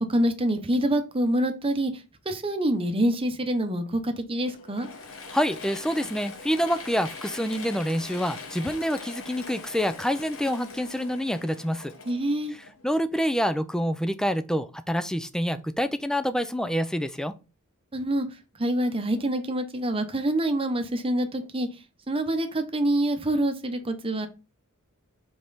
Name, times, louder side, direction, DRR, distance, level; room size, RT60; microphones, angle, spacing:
voice 1, 0.1-1.9 2.3-4.9 12.1-12.5 17.9-18.3 18.6-21.7 22.1-24.3, right 1 dB, 25° right, 0.9 m, -26 dB
Mechanisms / Drill, 4.4-13.1, left 4 dB, 65° left, 1.1 m, -42 dB
voice 2, 5.3-11.9 12.5-17.3, equal, 5° left, 0.4 m, -27 dB
5.3 x 4.4 x 4.0 m
head